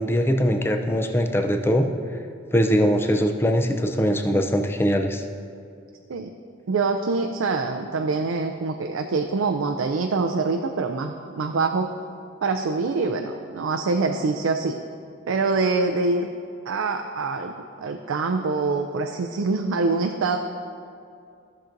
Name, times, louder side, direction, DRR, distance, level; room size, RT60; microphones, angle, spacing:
voice 1, 0.0-1.9 2.5-5.2, equal, 10° left, 5 dB, 0.4 m, -21 dB
voice 2, 6.7-11.9 12.4-14.8 15.3-16.3 16.7-17.5 17.8-20.4, right 3 dB, 85° right, 5 dB, 0.4 m, -25 dB
15.5 x 5.9 x 2.6 m, 2.5 s
head